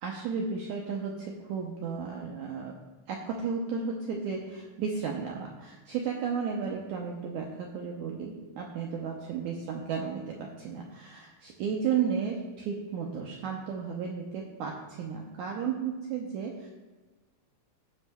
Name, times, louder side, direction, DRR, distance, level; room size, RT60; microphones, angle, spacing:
voice 1, 0.0-2.8 3.1-16.7, right 6 dB, 85° right, 0 dB, 1.7 m, -33 dB
18.0 x 6.2 x 2.2 m, 1.3 s
omnidirectional pair, 4.3 m